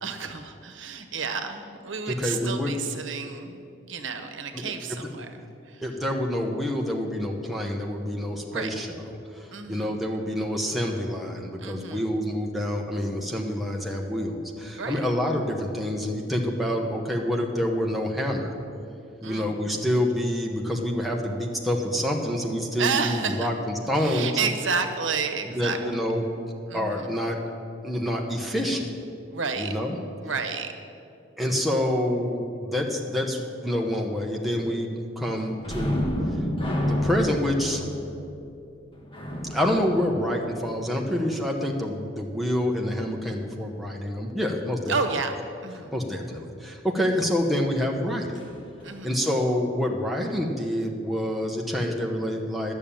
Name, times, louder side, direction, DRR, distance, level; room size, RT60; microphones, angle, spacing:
voice 1, 0.0-3.6 3.8-5.3 5.7-5.8 8.5-8.7 9.5-10.0 11.6-12.1 14.7-14.9 19.2-19.5 22.8-23.5 24.0-25.8 26.7-27.2 29.3-29.7 30.2-30.7 44.9-45.3 45.6-45.9 47.0-47.1 48.8-49.1, right 5 dB, 90° right, 6 dB, 1.0 m, -30 dB
voice 2, 2.1-2.7 4.5-4.7 5.8-9.0 9.3-18.5 19.2-24.3 25.4-26.2 26.7-27.4 27.8-28.9 29.6-30.0 31.4-36.1 36.4-36.5 36.8-37.8 39.5-45.0 45.9-48.4 49.0-52.7, left 1 dB, ahead, -1 dB, 1.0 m, -27 dB
sound 1, 35.6-41.0 48.3-48.5 48.9-49.0, left 1 dB, 25° left, 1.4 m, -30 dB
11.0 x 7.0 x 8.8 m, 2.6 s
head